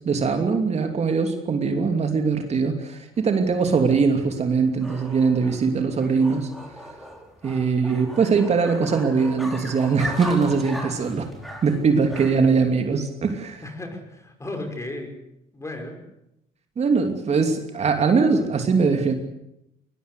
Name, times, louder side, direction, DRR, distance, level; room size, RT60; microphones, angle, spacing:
voice 1, 0.0-6.5 7.4-11.3 11.6-13.6 16.8-19.1, right 5 dB, 40° right, 5 dB, 2.9 m, -21 dB
sound 1, 3.2-12.6, equal, ahead, 4.9 m, -38 dB
voice 2, 13.6-15.2 15.5-16.0, left 2 dB, 15° left, 5 dB, 5.8 m, -34 dB
21.5 x 21.0 x 8.4 m, 0.84 s
cardioid pair, 110°, 17 cm